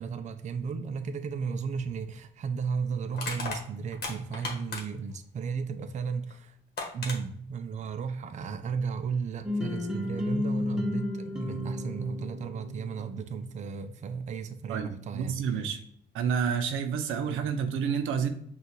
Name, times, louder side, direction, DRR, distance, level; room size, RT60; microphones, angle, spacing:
voice 1, 0.0-6.6 6.9-15.7, right 5 dB, 35° right, 9 dB, 0.4 m, -34 dB
Crushing, 1.8-1.9 3.1-5.1 6.3-6.4 6.8-7.2, left 3 dB, 50° left, 1.2 m, -36 dB
sound 1, 9.4-13.4, left 1 dB, 5° right, 0.7 m, -33 dB
voice 2, 14.7-15.8 16.1-18.3, right 7 dB, 90° right, 7 dB, 0.6 m, -29 dB
5.6 x 2.4 x 3.1 m, 0.67 s
cardioid pair, 90°, 20 cm